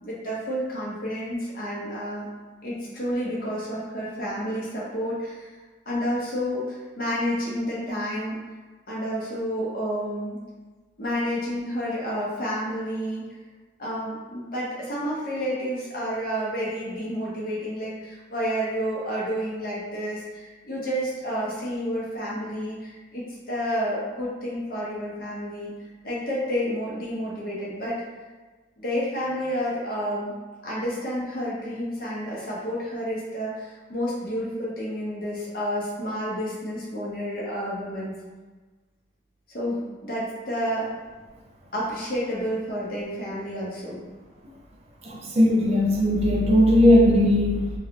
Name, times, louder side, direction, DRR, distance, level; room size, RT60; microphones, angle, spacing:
voice 1, 0.0-2.3 2.6-5.5 5.9-8.4 8.9-10.4 11.0-13.2 13.8-25.7 26.0-28.0 28.8-30.3 30.6-38.2 39.5-40.9 41.7-44.0, equal, 50° left, -6 dB, 0.9 m, -30 dB
voice 2, 45.0-47.7, left 1 dB, 35° right, -1 dB, 0.4 m, -18 dB
3.1 x 2.4 x 2.9 m, 1.3 s
head